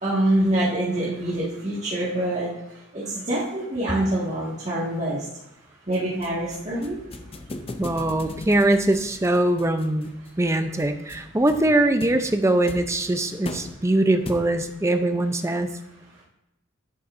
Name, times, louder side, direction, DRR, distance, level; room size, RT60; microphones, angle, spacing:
voice 1, 0.0-2.5 2.9-5.2 5.9-7.0, right 1 dB, 35° right, -9 dB, 1.8 m, -25 dB
sound 1, 5.9-14.8, left 2 dB, 30° left, 0.5 m, -40 dB
voice 2, 7.8-10.1 10.4-15.7, right 1 dB, 15° right, 8 dB, 0.6 m, -22 dB
10.5 x 8.3 x 2.6 m, 0.89 s
head